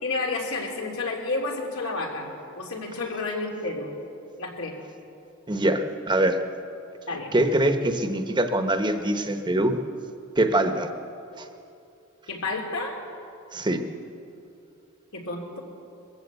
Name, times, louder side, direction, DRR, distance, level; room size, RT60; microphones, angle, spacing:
voice 1, 0.0-3.9 4.4-4.7 7.1-7.3 12.3-13.0 15.1-15.6, left 3 dB, 75° left, 1 dB, 3.3 m, -30 dB
voice 2, 5.5-6.4 7.3-9.8 10.4-10.9 13.5-13.8, right 1 dB, 20° right, 7 dB, 1.0 m, -23 dB
21.5 x 15.0 x 8.2 m, 2.6 s
head